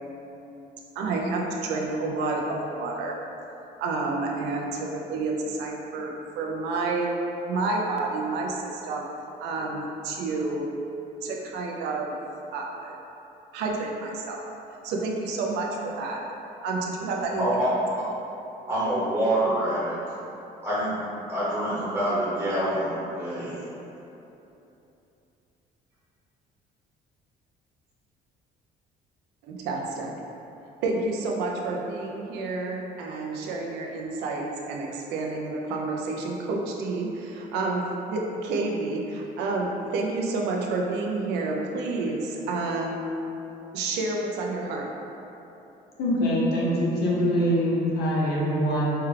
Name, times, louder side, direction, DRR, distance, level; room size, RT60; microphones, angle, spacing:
voice 1, 1.0-3.2 3.8-7.2 7.5-9.1 9.4-10.7 11.2-12.1 12.5-13.0 13.5-14.5 14.8-16.2 16.6-17.7 29.4-30.1 30.8-43.2 43.7-44.9, right 3 dB, 90° right, -1 dB, 0.5 m, -29 dB
voice 2, 17.4-17.7 18.7-19.9 20.6-21.0 21.3-23.6, right 1 dB, 10° right, -10 dB, 1.0 m, -26 dB
voice 3, 46.0-48.9, equal, 70° left, -6 dB, 1.0 m, -24 dB
4.4 x 2.4 x 3.2 m, 3.0 s
cardioid pair, 110°, 17 cm